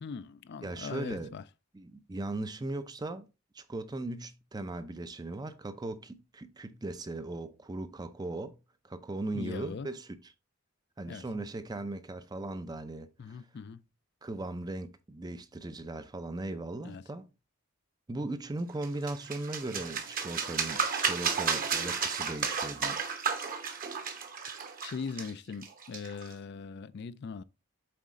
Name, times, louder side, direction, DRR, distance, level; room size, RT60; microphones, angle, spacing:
voice 1, 0.0-1.4 9.3-9.9 11.1-11.3 13.2-13.8 16.8-17.0 24.8-27.4, left 5 dB, 50° left, 0.3 m, -40 dB
voice 2, 0.6-1.3 1.7-3.3 3.5-8.6 8.8-10.3 11.0-13.4 14.2-17.2 18.1-23.0, right 2 dB, 20° right, 0.4 m, -38 dB
sound 1, 18.8-26.3, right 6 dB, 40° right, 0.9 m, -33 dB
7.7 x 4.1 x 3.6 m
head